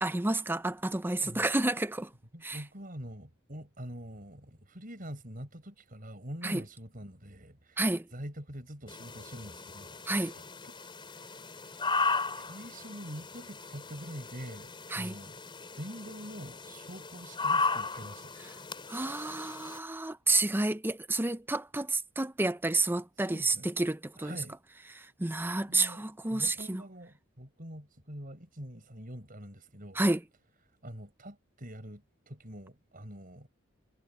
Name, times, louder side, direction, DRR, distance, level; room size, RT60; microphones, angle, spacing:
voice 1, 0.0-2.1 2.4-2.6 6.4-6.6 7.8-8.0 10.1-10.3 14.9-15.1 18.9-24.4 24.9-26.8 30.0-30.2, right 2 dB, 10° right, 0.6 m, -30 dB
voice 2, 2.3-10.0 10.6-10.7 11.1-11.9 12.2-15.4 15.8-18.3 23.2-23.7 24.2-24.6 25.4-30.0 30.8-33.5, equal, 40° right, 6.2 m, -45 dB
sound 1, 8.9-19.8, left 4 dB, 25° left, 4.3 m, -36 dB
head